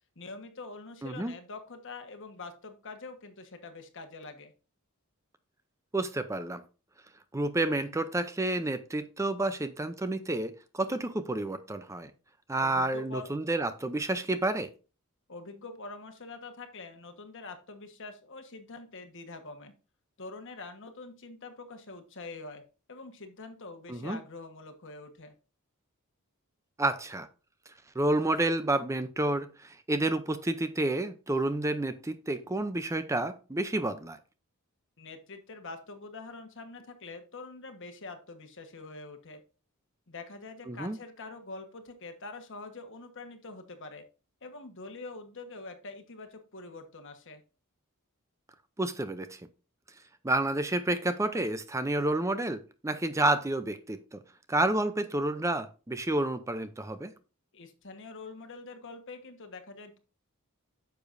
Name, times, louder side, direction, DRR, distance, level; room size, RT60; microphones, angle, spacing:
voice 1, 0.1-4.5 12.6-13.3 15.3-19.7 20.2-22.6 22.9-25.3 35.0-39.4 40.1-44.0 44.4-47.4 57.5-60.0, left 3 dB, 60° left, 1.4 m, -45 dB
voice 2, 1.0-1.3 5.9-6.6 7.3-12.1 12.5-14.7 23.9-24.2 26.8-27.3 28.0-34.2 40.7-41.0 48.8-49.4 50.2-54.2 54.5-57.1, right 2 dB, 15° right, 0.5 m, -30 dB
9.5 x 7.0 x 2.6 m
head